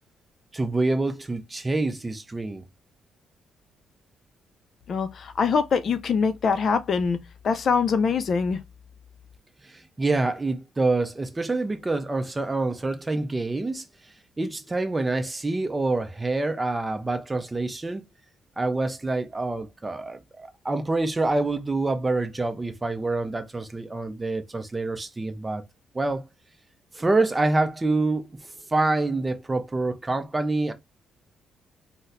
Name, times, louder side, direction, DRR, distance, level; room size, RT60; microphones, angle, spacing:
voice 1, 0.5-2.6 9.6-13.8 14.4-18.0 18.6-25.6 25.9-26.2 26.9-30.7, right 2 dB, 20° right, 0.5 m, -26 dB
voice 2, 4.9-7.2 7.4-8.6, left 5 dB, 55° left, 0.4 m, -23 dB
3.9 x 2.1 x 2.5 m
cardioid pair, 90°, 0 cm